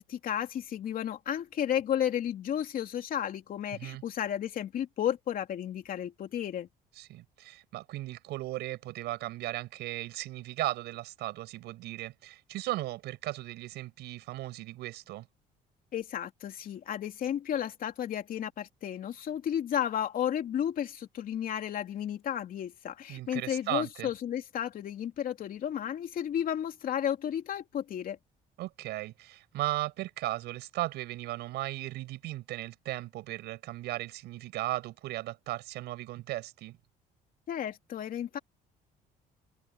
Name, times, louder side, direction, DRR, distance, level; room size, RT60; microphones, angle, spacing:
voice 1, 0.0-6.7 15.9-28.2 37.5-38.4, left 10 dB, 55° left, 3.0 m, -33 dB
voice 2, 7.0-15.3 23.1-24.1 28.6-36.8, right 17 dB, 85° right, 6.6 m, -36 dB
cardioid pair, 110°, 17 cm